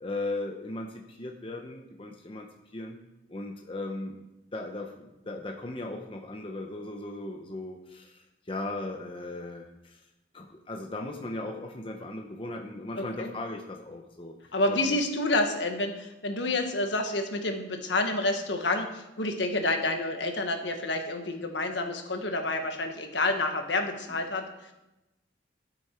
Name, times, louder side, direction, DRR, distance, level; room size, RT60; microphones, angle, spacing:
voice 1, 0.0-2.5 2.7-3.0 3.3-4.2 4.5-10.0 10.3-15.0 24.1-24.2, left 2 dB, 30° left, 2 dB, 0.9 m, -37 dB
voice 2, 13.0-13.3 14.5-24.7, left 2 dB, 65° left, 5 dB, 1.4 m, -29 dB
12.5 x 8.5 x 4.5 m, 0.97 s
head